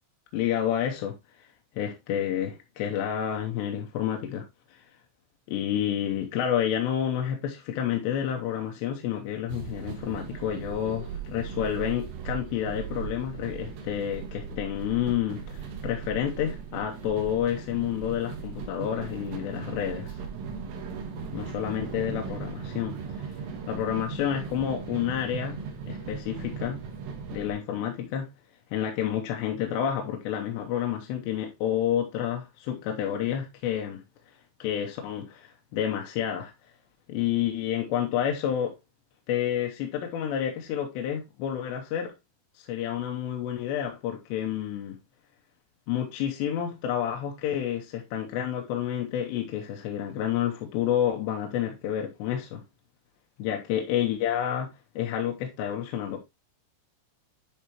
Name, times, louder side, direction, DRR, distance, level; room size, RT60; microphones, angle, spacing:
voice 1, 0.3-1.2 1.8-4.5 4.7-4.8 5.5-20.1 21.3-23.3 23.7-25.6 25.9-26.8 27.3-28.3 28.7-34.0 34.6-36.5 37.1-38.7 39.3-42.1 42.6-45.0 45.9-52.6 53.4-54.7 55.0-56.2, left 10 dB, 75° left, 2.8 m, -29 dB
sound 1, 9.5-27.5, right 6 dB, 70° right, 3.1 m, -38 dB
10.5 x 4.3 x 3.0 m
omnidirectional pair, 5.6 m